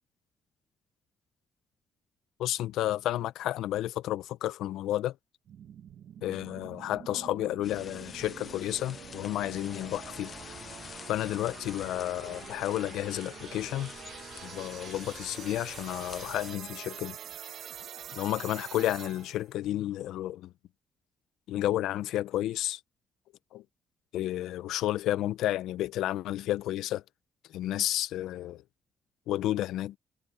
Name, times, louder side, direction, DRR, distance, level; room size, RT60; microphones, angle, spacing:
voice 1, 2.4-5.2 6.2-10.3 11.1-13.9 14.4-17.2 18.1-20.5 21.5-22.8 23.5-23.6 24.1-27.0 27.5-28.6 29.3-30.0, left 14 dB, 90° left, 0.6 m, -31 dB
sound 1, 5.5-19.5, right 9 dB, 70° right, 1.2 m, -46 dB
sound 2, 7.6-16.5, left 6 dB, 45° left, 0.5 m, -47 dB
cardioid pair, 90°, 0 cm